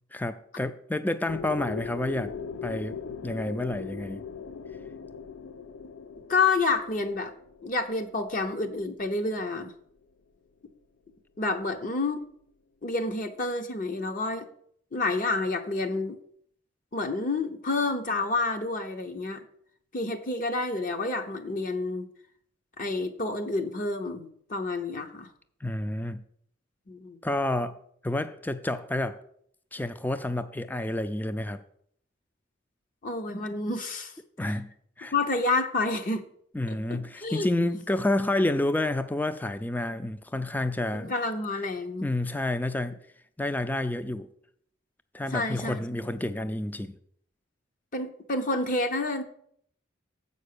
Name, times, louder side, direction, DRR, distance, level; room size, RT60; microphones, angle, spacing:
voice 1, 0.1-2.3 2.6-4.3 25.6-26.2 27.2-27.8 28.0-29.2 29.7-31.6 34.4-34.7 35.0-35.1 36.5-41.1 42.0-43.0 43.4-44.3 45.1-47.0, left 1 dB, 10° left, 0.4 m, -29 dB
sound 1, 1.3-9.1, left 6 dB, 75° left, 0.4 m, -40 dB
voice 2, 6.3-7.3 7.6-9.7 11.4-12.3 12.8-14.5 14.9-16.2 16.9-19.4 19.9-22.1 22.8-25.3 26.9-27.2 33.0-34.1 35.1-36.2 36.7-37.5 40.9-42.1 45.3-46.2 47.9-49.2, left 3 dB, 40° left, 0.7 m, -29 dB
7.6 x 5.4 x 6.6 m
head